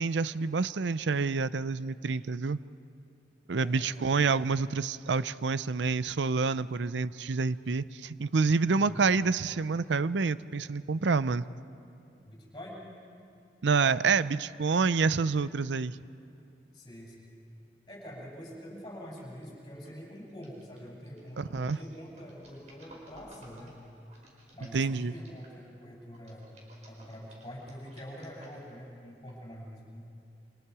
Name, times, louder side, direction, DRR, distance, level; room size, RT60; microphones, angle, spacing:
voice 1, 0.0-2.6 3.5-11.5 13.6-16.0 21.4-21.8 24.7-25.1, right 4 dB, 85° right, 16 dB, 0.6 m, -28 dB
voice 2, 3.6-4.1 8.6-9.0 12.2-12.8 16.7-17.3 17.9-23.7 24.5-26.5 26.9-30.1, equal, 25° left, -4 dB, 7.4 m, -45 dB
sound 1, 19.2-19.4 19.8-25.6 26.1-28.8 29.3-29.4, right 1 dB, 40° right, 5.1 m, -56 dB
29.0 x 26.5 x 4.8 m, 2.6 s
head